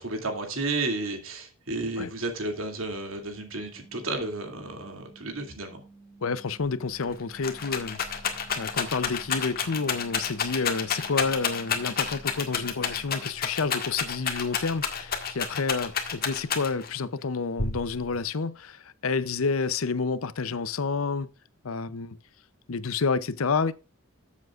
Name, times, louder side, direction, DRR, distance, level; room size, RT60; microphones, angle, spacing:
voice 1, 0.0-5.8, right 2 dB, 70° right, 2.6 m, -32 dB
sound 1, 3.3-13.3, right 3 dB, 30° left, 6.2 m, -53 dB
voice 2, 6.2-8.0 8.6-21.3 21.6-22.2 22.7-23.7, left 4 dB, 75° left, 0.7 m, -29 dB
Rattle, 6.6-6.7 7.0-17.0 17.6-18.2, left 6 dB, 45° left, 1.7 m, -30 dB
14.0 x 7.4 x 2.5 m
head